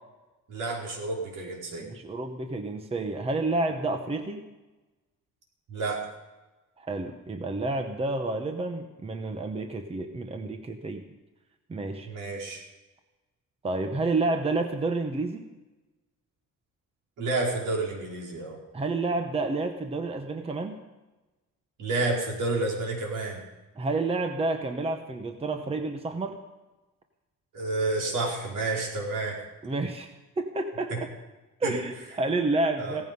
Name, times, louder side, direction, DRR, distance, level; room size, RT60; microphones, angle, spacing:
voice 1, 0.5-1.9 5.7-6.0 12.0-12.6 17.2-18.6 21.8-23.4 27.5-29.4 30.9-31.0 31.6-31.7 32.8-33.0, right 2 dB, 70° right, -2 dB, 5.2 m, -30 dB
voice 2, 1.8-4.5 6.8-11.0 11.7-12.1 13.6-15.5 18.7-20.8 23.8-26.4 29.6-30.1 30.4-31.1 31.6-33.1, right 2 dB, 20° right, 6 dB, 1.0 m, -29 dB
17.0 x 15.0 x 5.4 m, 1.1 s
cardioid pair, 170°, 32 cm